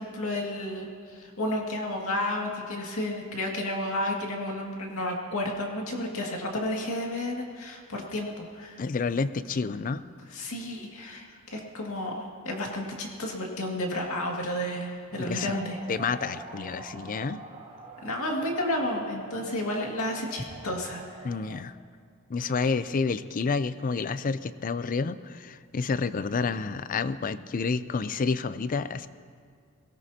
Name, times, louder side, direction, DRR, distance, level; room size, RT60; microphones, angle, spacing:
voice 1, 0.0-8.8 10.3-15.8 18.0-21.3, left 1 dB, 80° left, -1 dB, 2.2 m, -32 dB
voice 2, 8.8-10.0 15.2-15.6 15.9-17.4 21.2-21.8 22.3-29.1, left 4 dB, 40° left, 14 dB, 0.4 m, -29 dB
sound 1, 15.1-21.6, right 2 dB, 30° right, 1.2 m, -46 dB
23.0 x 17.5 x 2.8 m, 2.1 s
head